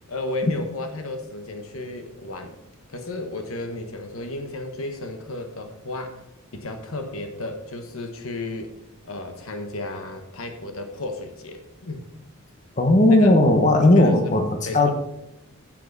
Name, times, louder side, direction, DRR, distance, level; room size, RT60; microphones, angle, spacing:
voice 1, 0.1-2.6 2.9-6.2 6.5-8.7 9.0-12.0 13.1-13.3 13.9-14.2 14.6-14.9, left 2 dB, 70° left, 6 dB, 1.3 m, -33 dB
voice 2, 12.8-14.9, left 1 dB, 35° left, 4 dB, 1.2 m, -16 dB
9.6 x 7.5 x 4.1 m, 0.88 s
head